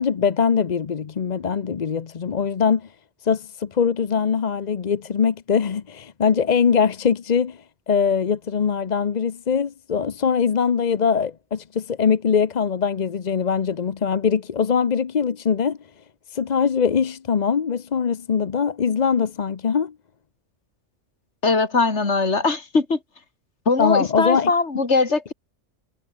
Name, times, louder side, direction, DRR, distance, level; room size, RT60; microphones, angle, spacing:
voice 1, 0.0-2.9 3.2-15.8 16.3-19.9 23.8-24.5, left 6 dB, 40° left, 0.8 m, -22 dB
voice 2, 21.4-23.0 23.7-25.3, left 3 dB, 70° left, 3.3 m, -21 dB
omnidirectional pair, 1.2 m